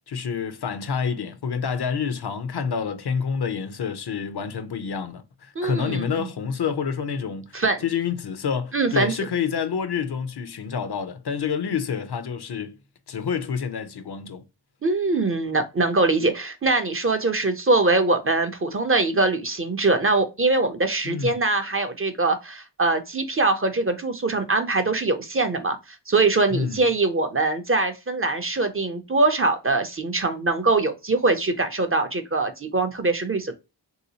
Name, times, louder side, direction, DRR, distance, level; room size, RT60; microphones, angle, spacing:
voice 1, 0.1-12.8 13.1-14.4 21.0-21.4 26.5-26.8, left 6 dB, 60° left, 0.6 m, -28 dB
voice 2, 5.6-6.3 7.5-7.8 8.7-9.1 14.8-25.8 26.1-33.5, right 3 dB, 30° right, 0.5 m, -23 dB
3.4 x 2.8 x 2.7 m
wide cardioid pair, 110°, 45 cm